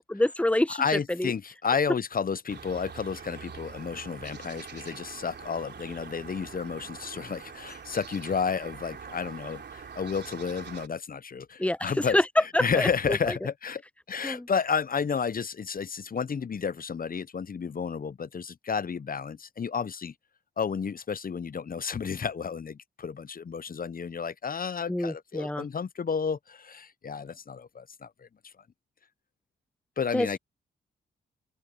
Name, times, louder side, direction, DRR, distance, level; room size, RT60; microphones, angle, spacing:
voice 1, 0.0-1.3 11.6-12.2 12.5-13.4 14.2-14.5 24.9-25.7 30.1-30.4, left 1 dB, 5° left, 1.0 m, -27 dB
voice 2, 0.8-13.8 14.1-20.1 20.6-28.5 30.0-30.4, left 6 dB, 45° left, 0.9 m, -31 dB
sound 1, 2.5-10.9, right 6 dB, 60° right, 3.2 m, -44 dB
supercardioid pair, 45°, 20 cm